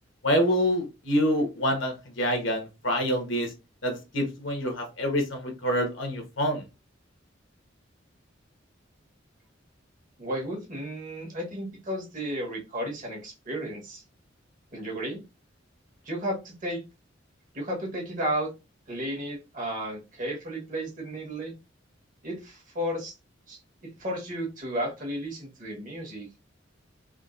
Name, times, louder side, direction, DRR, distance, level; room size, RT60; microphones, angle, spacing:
voice 1, 0.2-3.5 3.8-6.6, equal, 75° left, 3 dB, 1.1 m, -26 dB
voice 2, 10.2-14.0 14.7-15.2 16.0-16.8 17.5-18.5 18.9-21.5 22.2-23.1 23.5-26.3, equal, 45° right, -1 dB, 1.3 m, -33 dB
3.6 x 2.3 x 2.5 m, 0.27 s
head